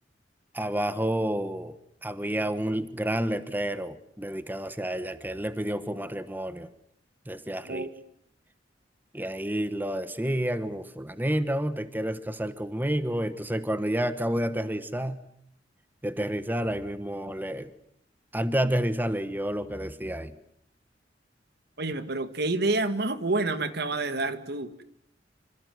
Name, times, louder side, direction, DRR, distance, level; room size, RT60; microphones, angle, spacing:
voice 1, 0.5-1.7 2.0-6.7 7.3-7.9 9.1-15.2 16.0-17.7 18.3-20.3, right 1 dB, 10° right, 12 dB, 1.2 m, -29 dB
voice 2, 21.8-24.8, right 2 dB, 65° right, 11 dB, 2.0 m, -28 dB
27.0 x 26.5 x 7.9 m, 0.71 s
head